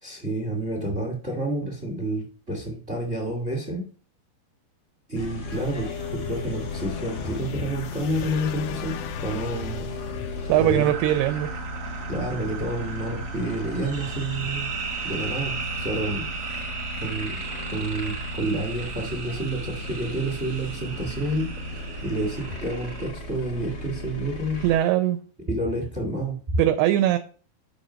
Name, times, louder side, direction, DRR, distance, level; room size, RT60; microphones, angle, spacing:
voice 1, 0.0-3.9 5.1-9.9 10.6-10.9 12.1-14.7 15.0-16.6 17.0-17.4 17.7-24.6 25.5-26.4, right 1 dB, 30° right, 1 dB, 1.1 m, -29 dB
sound 1, 5.1-24.8, equal, 65° left, 1.0 m, -36 dB
sound 2, 5.5-10.9, left 8 dB, 90° left, 2.9 m, -36 dB
voice 2, 10.5-11.5 24.6-25.2 26.6-27.2, right 13 dB, 80° right, 7 dB, 2.5 m, -20 dB
sound 3, 10.8-23.1, right 5 dB, 50° right, 1.7 m, -36 dB
7.2 x 5.4 x 5.0 m, 0.39 s
omnidirectional pair, 4.9 m